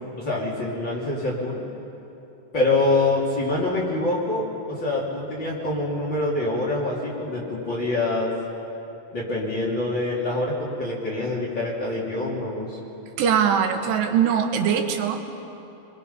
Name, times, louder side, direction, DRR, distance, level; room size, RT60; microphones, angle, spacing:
voice 1, 0.2-1.6 2.5-8.3 9.1-12.8, left 2 dB, 30° left, -5 dB, 3.2 m, -25 dB
voice 2, 13.2-15.2, right 8 dB, 80° right, 5 dB, 3.3 m, -21 dB
28.5 x 22.0 x 5.6 m, 2.9 s
omnidirectional pair, 4.9 m